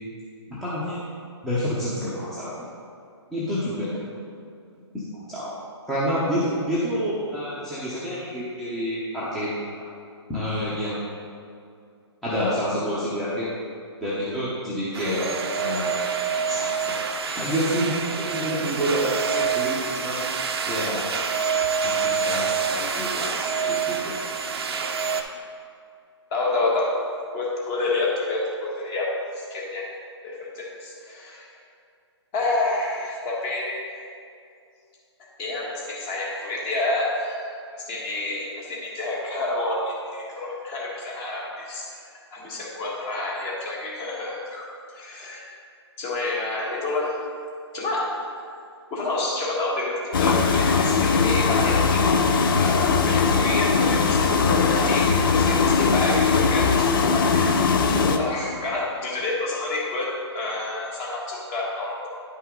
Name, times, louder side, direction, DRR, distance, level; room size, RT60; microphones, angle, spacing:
voice 1, 0.5-1.0 1.4-2.5 3.3-4.1 4.9-5.0 5.3-5.5 5.9-9.5 10.3-11.0 12.2-13.5 14.0-15.3 15.6-16.0 16.5-16.7 17.4-20.2 20.7-21.1 21.8-24.1, equal, ahead, -11 dB, 0.9 m, -28 dB
sound 1, 14.9-25.2, right 6 dB, 60° right, 0.7 m, -27 dB
voice 2, 26.3-26.9 27.3-29.1 29.5-29.8 30.2-31.6 32.3-33.9 35.4-42.0 42.3-44.7 44.9-45.5 46.0-47.1 47.7-48.1 48.9-56.9 57.1-60.1 60.3-62.1, left 2 dB, 25° left, -3 dB, 1.5 m, -29 dB
sound 2, 50.1-58.2, left 5 dB, 50° left, 0.6 m, -20 dB
10.0 x 5.6 x 3.8 m, 2.4 s
hypercardioid pair, 155°, 15 cm